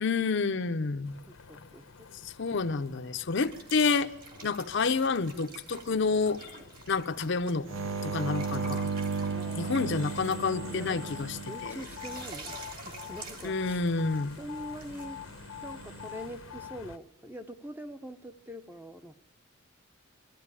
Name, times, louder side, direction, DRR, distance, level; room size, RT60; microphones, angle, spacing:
voice 1, 0.0-1.2 2.2-4.1 4.4-6.4 6.9-7.7 8.0-8.9 9.6-11.9 13.4-14.4, left 4 dB, 60° left, 0.6 m, -29 dB
sound 1, 1.1-17.0, left 7 dB, 80° left, 0.9 m, -47 dB
voice 2, 1.5-2.1 9.3-11.0 11.4-13.8 14.4-15.2 15.6-19.1, equal, 10° right, 0.7 m, -44 dB
sound 2, 3.4-15.1, right 3 dB, 45° right, 2.6 m, -48 dB
sound 3, 7.7-12.3 15.6-16.1, right 5 dB, 65° right, 0.8 m, -35 dB
21.5 x 13.0 x 9.7 m
head